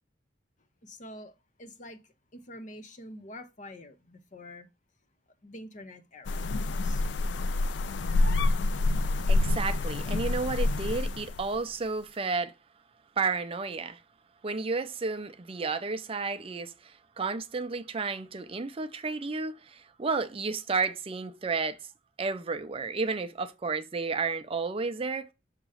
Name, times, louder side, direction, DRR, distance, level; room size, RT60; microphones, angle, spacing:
voice 1, 0.8-1.3 1.6-2.0 2.3-4.7 5.4-7.0, left 1 dB, 40° left, 0.8 m, -46 dB
sound 1, 6.3-11.6, left 2 dB, 70° left, 0.4 m, -27 dB
voice 2, 9.3-12.5 13.2-14.0 14.4-21.8 22.2-25.3, right 4 dB, 30° right, 0.5 m, -32 dB
6.5 x 3.0 x 4.8 m
head